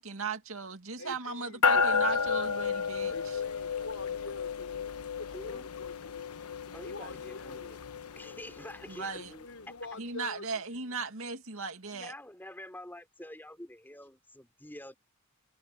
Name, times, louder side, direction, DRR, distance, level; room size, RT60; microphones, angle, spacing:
voice 1, 0.0-3.4 8.9-9.4 10.0-12.1, right 4 dB, 65° right, 2.4 m, -38 dB
voice 2, 1.0-2.2 3.1-6.3 6.8-7.7 9.1-11.0, left 2 dB, 65° left, 4.8 m, -46 dB
sound 1, 1.6-9.3, left 5 dB, 90° left, 1.0 m, -32 dB
voice 3, 5.3-5.7 6.7-7.8 8.1-9.5 11.9-14.9, left 1 dB, 10° left, 3.1 m, -47 dB
head